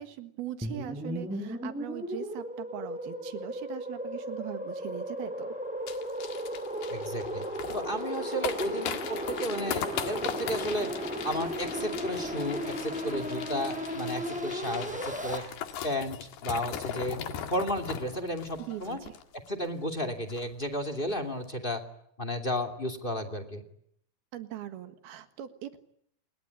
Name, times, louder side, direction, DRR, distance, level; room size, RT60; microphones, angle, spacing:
voice 1, 0.0-5.6 18.7-19.1 24.3-25.8, right 12 dB, 85° right, 10 dB, 3.6 m, -41 dB
sound 1, 0.6-15.4, equal, ahead, 5.2 m, -35 dB
sound 2, 5.9-19.7 19.9-20.0 20.3-20.6 21.0-21.1, left 9 dB, 85° left, 3.9 m, -39 dB
voice 2, 6.9-7.4 7.7-10.9 11.2-15.4 15.8-17.2 17.5-19.0 19.5-21.8 22.2-23.6, equal, 15° left, 11 dB, 2.1 m, -33 dB
27.5 x 21.5 x 9.7 m, 0.72 s
omnidirectional pair, 4.3 m